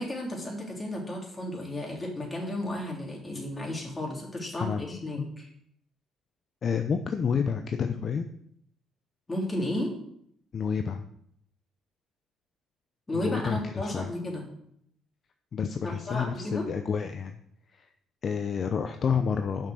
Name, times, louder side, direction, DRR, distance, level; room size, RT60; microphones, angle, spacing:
voice 1, 0.0-5.5 9.3-9.9 13.1-14.4 15.8-16.7, left 1 dB, 25° left, -1 dB, 3.5 m, -33 dB
voice 2, 4.6-5.3 6.6-8.3 10.5-11.0 13.1-14.1 15.5-17.4 17.7-17.9 18.2-19.7, left 6 dB, 50° left, 7 dB, 0.7 m, -29 dB
6.6 x 6.3 x 6.4 m, 0.70 s
supercardioid pair, 65°, 0 cm